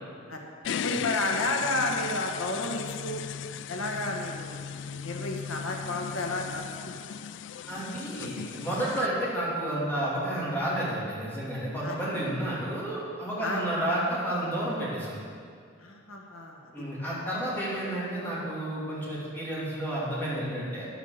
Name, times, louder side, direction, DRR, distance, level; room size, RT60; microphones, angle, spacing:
sound 1, 0.6-9.1, left 8 dB, 60° left, 0.3 m, -36 dB
voice 1, 0.8-3.2 3.7-4.6 4.9-6.6 11.8-12.0 13.4-13.6 15.8-16.6, left 2 dB, 90° left, 1 dB, 1.4 m, -31 dB
voice 2, 7.7-15.2 16.7-20.9, right 1 dB, 10° left, -8 dB, 3.1 m, -31 dB
10.5 x 9.8 x 6.7 m, 2.2 s
head